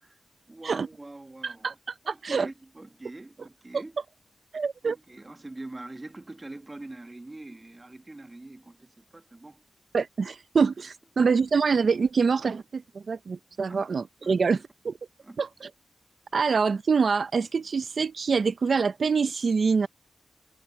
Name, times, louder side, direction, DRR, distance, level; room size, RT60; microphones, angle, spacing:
voice 1, 0.5-1.7 2.0-4.0 4.8-9.6 13.7-13.9 14.2-14.6 15.2-15.4, right 2 dB, 35° right, 1.2 m, -44 dB
voice 2, 1.4-2.5 3.7-3.8 4.5-5.0 9.9-14.9 15.4-15.7 16.3-19.9, right 5 dB, 75° right, 0.5 m, -25 dB
cardioid pair, 50°, 0 cm